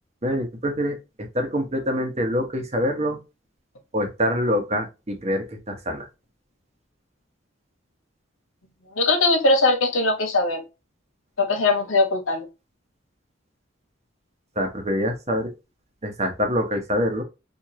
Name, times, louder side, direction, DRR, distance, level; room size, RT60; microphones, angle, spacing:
voice 1, 0.2-3.2 3.9-6.1 14.6-15.5 16.0-17.2, equal, 30° right, 5 dB, 0.9 m, -25 dB
voice 2, 8.9-10.6 11.4-12.5, left 2 dB, 85° left, 3 dB, 1.4 m, -20 dB
4.7 x 2.7 x 2.8 m, 0.27 s
head